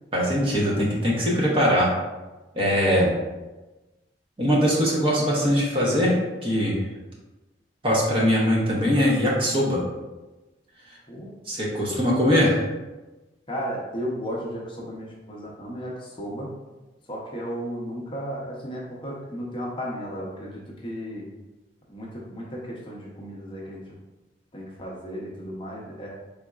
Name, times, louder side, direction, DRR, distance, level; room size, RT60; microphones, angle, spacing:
voice 1, 0.1-1.9 2.5-3.1 4.4-6.2 6.4-6.8 7.8-9.8 11.5-12.7, equal, 30° right, -4 dB, 0.9 m, -21 dB
voice 2, 13.5-16.5 17.1-21.3 21.9-23.9 24.5-26.1, equal, 25° left, -3 dB, 0.7 m, -34 dB
4.1 x 3.7 x 2.3 m, 1.1 s
head